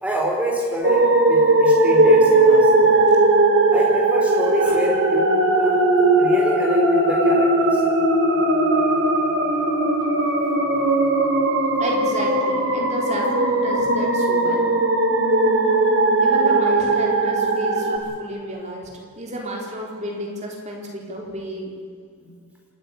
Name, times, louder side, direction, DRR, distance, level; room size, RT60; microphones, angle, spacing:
voice 1, 0.0-3.0 3.7-5.2 5.6-5.8 6.2-7.8, equal, 5° right, -1 dB, 4.4 m, -27 dB
sound 1, 0.8-18.0, right 2 dB, 55° right, 3.6 m, -18 dB
voice 2, 11.8-14.6 16.2-21.8 22.2-22.3, right 1 dB, 30° right, -1 dB, 4.0 m, -32 dB
27.0 x 12.5 x 10.0 m, 2.2 s
head